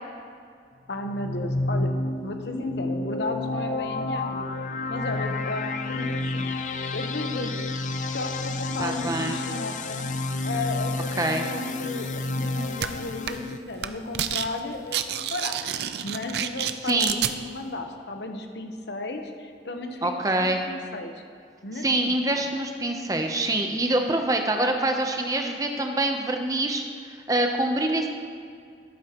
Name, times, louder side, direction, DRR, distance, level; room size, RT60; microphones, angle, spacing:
voice 1, 0.9-1.9 2.2-4.5 4.9-6.5 6.9-7.5 8.1-10.0 10.4-17.0 17.3-21.2 21.6-22.4, left 2 dB, 80° left, 4 dB, 1.0 m, -34 dB
sound 1, 1.0-13.6, left 2 dB, 45° left, 0.5 m, -30 dB
voice 2, 8.8-9.4 11.2-11.4 16.8-17.2 20.0-20.6 21.8-26.8 27.3-28.1, right 2 dB, 20° right, 4 dB, 0.7 m, -25 dB
sound 2, 12.8-12.9 13.3-13.5 13.8-14.5 14.7-17.3, right 10 dB, 70° right, 0.5 m, -29 dB
13.0 x 11.5 x 3.0 m, 2.2 s
head